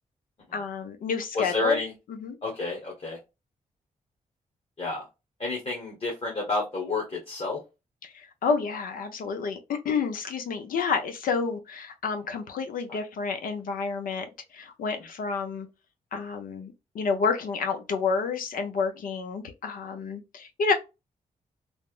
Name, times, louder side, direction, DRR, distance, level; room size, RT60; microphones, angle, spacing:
voice 1, 0.5-1.8 2.1-2.4 8.0-14.3 14.5-15.7 16.1-20.7, left 5 dB, 80° left, 0.6 m, -29 dB
voice 2, 1.3-1.9 2.4-3.2 4.8-5.0 5.4-7.6, left 3 dB, 40° left, 1.2 m, -29 dB
3.3 x 2.1 x 2.4 m
cardioid pair, 70°, 14 cm